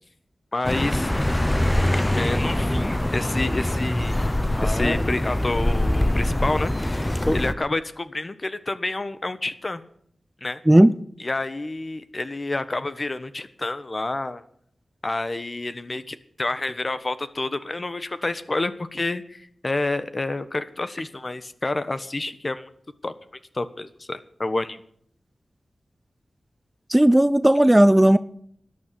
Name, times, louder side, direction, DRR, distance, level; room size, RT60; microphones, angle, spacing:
voice 1, 0.5-1.1 2.2-4.2 4.6-9.8 10.4-10.6 11.2-14.4 15.0-22.7 23.0-23.1 23.5-24.8, left 2 dB, 40° left, 1.2 m, -29 dB
Accelerating revving vroom, 0.6-7.5, left 1 dB, 15° left, 0.9 m, -23 dB
voice 2, 26.9-28.2, right 1 dB, 15° right, 0.6 m, -15 dB
13.5 x 9.7 x 8.6 m
wide cardioid pair, 65°, 0 cm